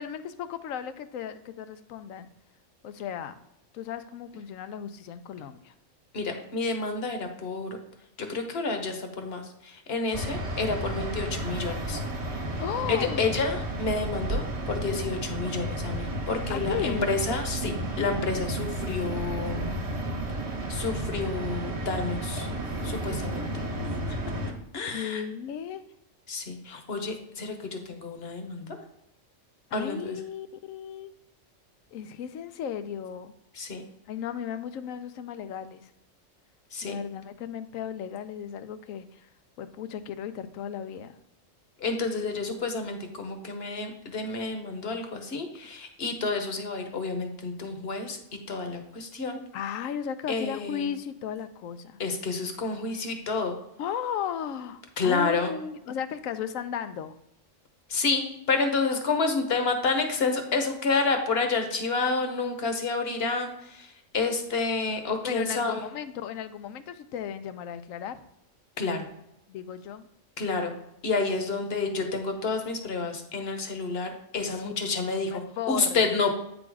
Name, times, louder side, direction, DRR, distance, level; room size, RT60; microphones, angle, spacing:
voice 1, 0.0-2.3 2.8-3.4 3.7-5.7 12.6-13.3 16.5-17.1 24.8-25.8 29.7-31.1 31.9-33.3 34.1-35.9 36.8-39.3 39.6-41.2 49.5-52.0 53.8-57.2 65.2-68.2 69.5-70.1 74.5-74.7 75.3-76.1, left 8 dB, 90° left, 11 dB, 1.0 m, -35 dB
voice 2, 6.1-7.8 8.2-12.4 12.9-19.7 20.7-22.5 22.8-23.6 24.1-24.2 24.7-25.2 26.3-28.7 29.7-30.2 33.5-33.8 36.7-37.0 41.8-48.2 48.5-49.4 50.3-50.9 52.0-53.5 55.0-55.5 57.9-65.8 68.8-69.1 70.4-70.7 71.0-75.4 75.7-76.3, left 4 dB, 55° left, 5 dB, 1.1 m, -29 dB
sound 1, 10.1-24.5, right 1 dB, 60° right, 1.3 m, -32 dB
8.6 x 3.9 x 4.7 m, 0.82 s
omnidirectional pair, 1.3 m